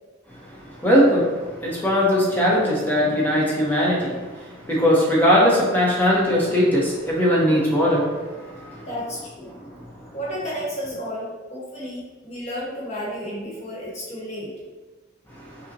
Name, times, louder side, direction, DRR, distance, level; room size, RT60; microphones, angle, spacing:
voice 1, 0.8-1.3 1.6-4.3 4.7-8.9, equal, 10° left, -6 dB, 0.7 m, -19 dB
voice 2, 8.9-9.5 10.1-14.5, equal, 35° left, -6 dB, 1.1 m, -32 dB
5.3 x 2.1 x 2.6 m, 1.3 s
head